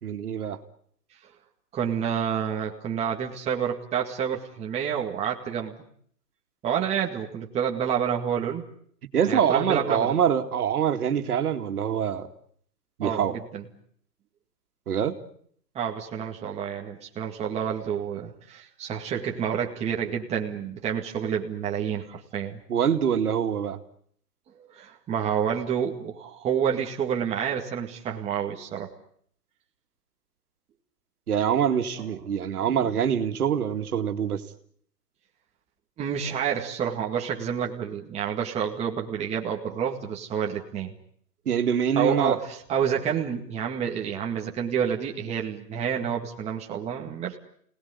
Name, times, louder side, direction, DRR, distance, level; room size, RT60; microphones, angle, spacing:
voice 1, 0.0-0.6 9.1-12.3 13.0-13.4 14.9-15.2 22.7-23.8 31.3-34.4 41.5-42.4, right 8 dB, 65° right, 6 dB, 2.5 m, -25 dB
voice 2, 1.7-5.7 6.6-8.7 9.2-10.2 13.0-13.6 15.8-22.6 24.7-28.9 32.0-32.1 32.6-32.9 36.0-40.9 42.0-47.4, right 8 dB, 15° right, 0 dB, 2.0 m, -29 dB
27.0 x 19.0 x 9.7 m, 0.65 s
hypercardioid pair, 150°, 48 cm